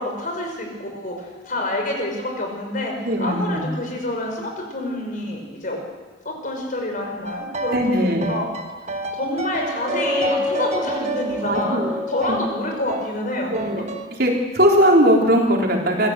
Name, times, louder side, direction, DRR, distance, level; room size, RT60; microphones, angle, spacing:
voice 1, 0.0-5.8 6.2-8.5 9.2-11.8 12.1-13.9, left 1 dB, 45° left, 2 dB, 5.5 m, -28 dB
voice 2, 3.0-3.7 7.7-8.3 11.4-11.9 12.3-12.4 13.5-13.8 14.2-16.1, equal, 60° right, 0 dB, 4.2 m, -19 dB
sound 1, 7.3-7.9 8.2-12.5 12.9-13.1 13.5-14.1, right 2 dB, 40° right, 1.7 m, -30 dB
sound 2, 9.6-13.1, left 2 dB, 15° right, 6.5 m, -29 dB
26.0 x 15.0 x 7.9 m, 1.3 s
head